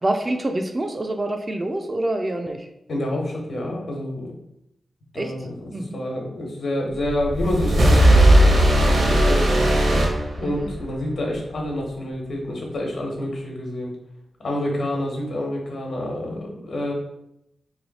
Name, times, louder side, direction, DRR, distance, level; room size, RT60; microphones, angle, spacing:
voice 1, 0.0-2.7 5.2-5.3 5.7-6.0 10.4-10.7, right 1 dB, 25° right, 5 dB, 0.3 m, -26 dB
voice 2, 2.9-4.3 5.1-13.9 14.4-16.9, left 1 dB, 70° left, 0 dB, 1.1 m, -28 dB
sound 1, 7.0-10.8, right 1 dB, 70° right, 0.9 m, -17 dB
3.2 x 2.6 x 4.0 m, 0.80 s
wide cardioid pair, 135°, 0 cm